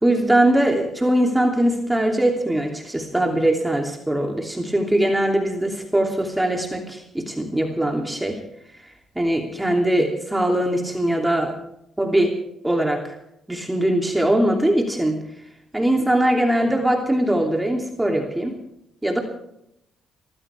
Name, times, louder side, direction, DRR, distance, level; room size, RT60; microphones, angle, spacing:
voice 1, 0.0-8.4 9.1-11.6 12.0-12.3 12.6-13.1 13.5-15.2 15.7-18.6 19.0-19.2, right 1 dB, 10° right, 2 dB, 2.8 m, -21 dB
22.5 x 15.0 x 3.5 m, 0.77 s
cardioid pair, 90°, 0 cm